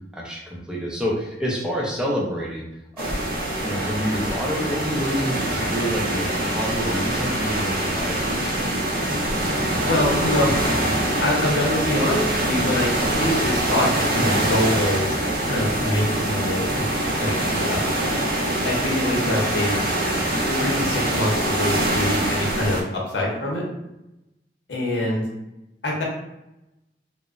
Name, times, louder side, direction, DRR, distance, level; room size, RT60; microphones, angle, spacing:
voice 1, 0.1-2.7 2.9-3.2 3.6-8.7 14.1-14.4, equal, 5° right, -3 dB, 0.5 m, -28 dB
sound 1, 3.0-22.8, right 1 dB, 55° right, 0.5 m, -24 dB
voice 2, 9.9-10.6 11.2-17.8 18.0-18.2 18.6-19.7 20.5-23.6 24.7-25.3 25.8-26.0, left 1 dB, 75° left, -2 dB, 0.8 m, -25 dB
3.0 x 2.0 x 2.4 m, 0.91 s
head